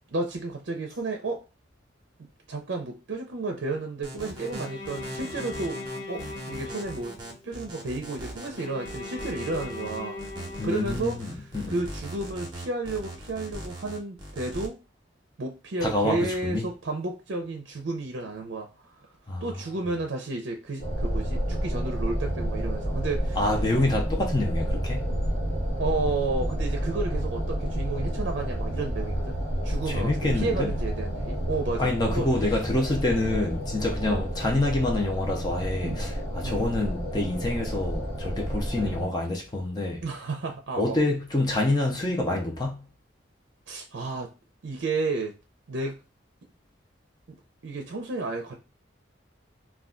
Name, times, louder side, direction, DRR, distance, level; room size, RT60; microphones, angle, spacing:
voice 1, 0.1-1.4 2.5-5.8 6.1-7.1 7.4-10.2 10.6-14.8 15.4-18.9 19.4-23.4 25.8-32.3 33.3-33.5 34.0-34.3 35.8-36.0 36.4-36.6 38.8-39.0 40.0-41.0 43.7-44.3 44.6-45.3 45.7-46.0 47.3-47.4 47.6-48.5, right 3 dB, 75° right, 0.5 m, -32 dB
sound 1, 4.0-14.7, right 1 dB, 25° right, 0.7 m, -40 dB
Bowed string instrument, 4.4-7.6 8.6-11.5, left 3 dB, 75° left, 0.8 m, -39 dB
voice 2, 10.6-11.8 15.8-16.7 19.3-19.5 23.4-25.1 29.9-30.7 31.8-40.0 40.8-42.8, left 2 dB, 20° left, 0.5 m, -27 dB
sound 2, 20.8-39.1, equal, 60° left, 1.1 m, -30 dB
2.3 x 2.2 x 3.6 m
head